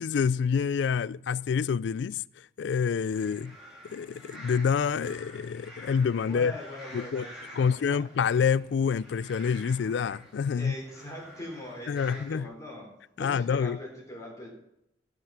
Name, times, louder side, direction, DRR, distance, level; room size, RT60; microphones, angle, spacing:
voice 1, 0.0-3.6 3.9-6.5 6.9-7.3 7.5-10.8 11.9-12.5 13.2-13.8, left 6 dB, 65° left, 0.3 m, -27 dB
sound 1, 3.1-12.4, equal, 5° right, 3.1 m, -49 dB
voice 2, 6.2-8.0 10.5-12.9 13.2-14.5, left 1 dB, 15° left, 3.8 m, -42 dB
17.0 x 6.0 x 5.7 m
head